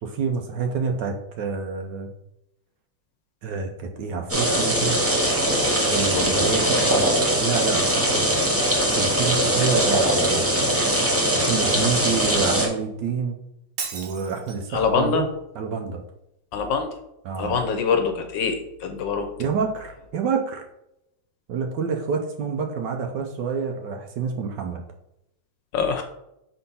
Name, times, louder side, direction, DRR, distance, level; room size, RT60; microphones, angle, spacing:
voice 1, 0.0-2.1 3.4-5.0 5.9-8.4 8.9-10.8 11.3-13.4 13.9-15.3 15.6-16.0 17.2-17.6 19.4-20.7 21.5-24.8, right 5 dB, 70° right, 4 dB, 1.2 m, -28 dB
sound 1, 4.3-12.7, right 1 dB, 15° right, 0.4 m, -21 dB
voice 2, 6.1-6.5 14.7-15.2 16.5-16.9 17.4-19.3 25.7-26.0, left 5 dB, 70° left, 5 dB, 1.3 m, -24 dB
Shatter, 13.8-14.8, right 6 dB, 85° right, 1.8 m, -34 dB
4.5 x 3.8 x 5.5 m, 0.83 s
omnidirectional pair, 2.3 m